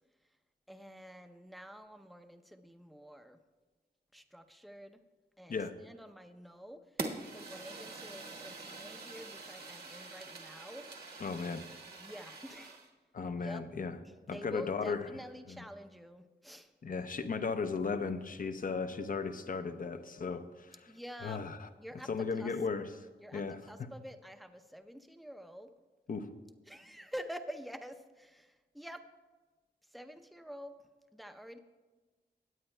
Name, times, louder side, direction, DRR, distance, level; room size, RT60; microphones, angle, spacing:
voice 1, 0.7-3.4 4.1-5.0 5.4-5.6 5.9-6.8 7.2-10.9 12.0-12.8 13.4-13.6 14.0-16.7 20.9-21.5 21.8-22.1 22.4-22.5 23.2-25.7 26.7-29.0 29.9-30.7 31.1-31.6, equal, ahead, 7 dB, 0.6 m, -48 dB
Fire, 7.0-12.9, right 3 dB, 60° right, 1.2 m, -45 dB
voice 2, 11.2-11.6 13.1-14.0 14.3-15.1 15.5-15.6 16.8-20.9 21.2-21.7 22.0-23.0 23.3-23.9 26.1-26.3, left 5 dB, 50° left, 9 dB, 0.7 m, -36 dB
18.5 x 8.6 x 2.2 m, 1.3 s
cardioid pair, 70°, 18 cm